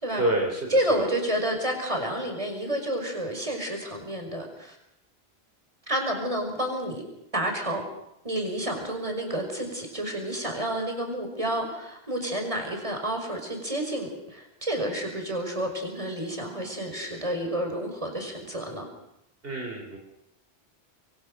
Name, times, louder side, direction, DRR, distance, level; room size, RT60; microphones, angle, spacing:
voice 1, 0.2-1.0 19.4-20.0, right 1 dB, 65° right, 0 dB, 4.2 m, -28 dB
voice 2, 0.7-4.8 5.9-7.0 7.3-7.9 8.2-18.9, right 1 dB, 30° right, 3 dB, 5.8 m, -30 dB
27.0 x 23.0 x 6.7 m, 0.81 s
omnidirectional pair, 1.1 m